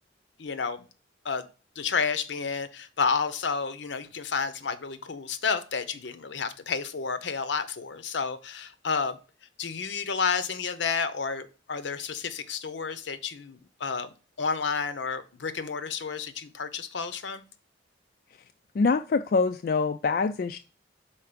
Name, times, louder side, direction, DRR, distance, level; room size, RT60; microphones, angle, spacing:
voice 1, 0.4-0.8 1.2-1.5 1.8-9.2 9.6-14.1 14.4-17.4, left 5 dB, 75° left, 12 dB, 0.7 m, -30 dB
voice 2, 18.7-20.6, left 4 dB, 50° left, 8 dB, 0.3 m, -25 dB
5.7 x 4.4 x 5.0 m, 0.34 s
head